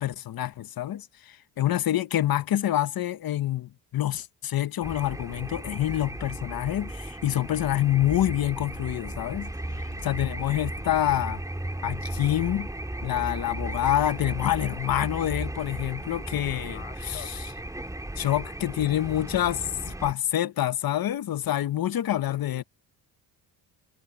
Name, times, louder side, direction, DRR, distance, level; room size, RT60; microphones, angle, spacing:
voice 1, 0.0-9.5 10.0-11.4 11.8-12.7 13.0-17.4 18.2-19.6 20.0-22.6, left 13 dB, 55° left, 1.2 m, -27 dB
sound 1, 4.8-20.1, right 1 dB, 10° right, 3.9 m, -35 dB
voice 2, 9.7-10.2 16.5-17.3 19.8-20.2 22.3-22.6, left 14 dB, 80° left, 5.3 m, -47 dB
cardioid pair, 95°, 43 cm